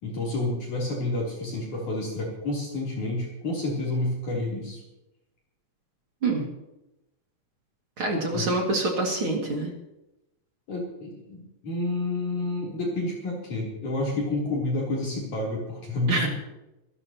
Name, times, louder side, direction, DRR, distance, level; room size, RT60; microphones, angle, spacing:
voice 1, 0.0-4.8 8.3-8.5 10.7-16.3, left 2 dB, 45° left, -4 dB, 4.6 m, -29 dB
voice 2, 8.0-9.7 16.1-16.3, right 2 dB, 40° right, 0 dB, 2.4 m, -26 dB
26.5 x 13.0 x 3.0 m, 0.93 s
omnidirectional pair, 5.0 m